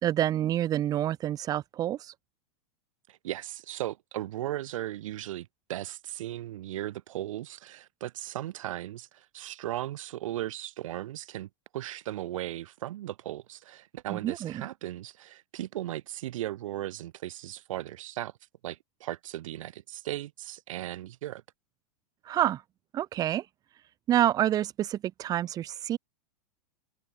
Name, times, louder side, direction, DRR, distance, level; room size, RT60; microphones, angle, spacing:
voice 1, 0.0-2.1 14.1-14.6 22.3-22.6 22.9-23.4 24.1-26.0, right 12 dB, 20° right, 0.7 m, -27 dB
voice 2, 3.1-18.3 18.6-21.4, right 14 dB, 70° right, 4.7 m, -37 dB
supercardioid pair, 155°, 17 cm